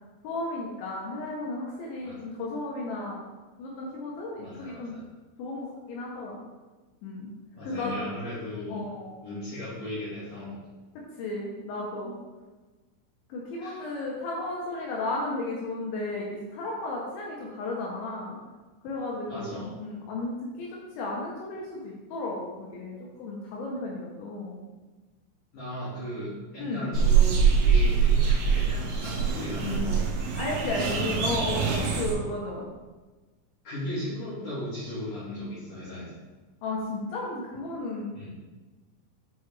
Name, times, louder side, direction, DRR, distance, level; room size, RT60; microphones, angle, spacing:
voice 1, 0.2-3.2 3.6-4.9 5.4-6.4 7.0-7.3 7.6-7.9 8.7-9.2 11.2-12.1 13.3-18.4 18.8-20.7 21.0-24.6 26.6-26.9 30.4-32.7 36.6-38.1, left 2 dB, 75° left, -3 dB, 2.9 m, -34 dB
voice 2, 4.4-5.1 7.5-8.8 9.2-10.6 13.6-13.9 19.3-19.7 25.5-30.1 30.7-31.2 33.6-36.2 38.1-38.3, left 1 dB, 55° left, -11 dB, 2.5 m, -36 dB
sound 1, 26.9-32.2, right 6 dB, 80° right, 3.1 m, -24 dB
8.4 x 4.6 x 3.2 m, 1.2 s
omnidirectional pair, 5.9 m